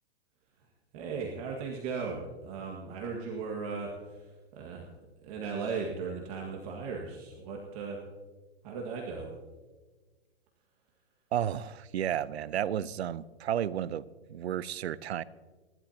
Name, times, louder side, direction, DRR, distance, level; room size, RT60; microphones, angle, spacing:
voice 1, 0.9-4.2 4.6-4.9 5.2-8.0 8.6-9.3, right 5 dB, 35° right, -1 dB, 1.9 m, -37 dB
voice 2, 11.3-15.2, right 10 dB, 75° right, 19 dB, 0.7 m, -32 dB
27.0 x 12.0 x 2.9 m, 1.3 s
hypercardioid pair, 150°, 32 cm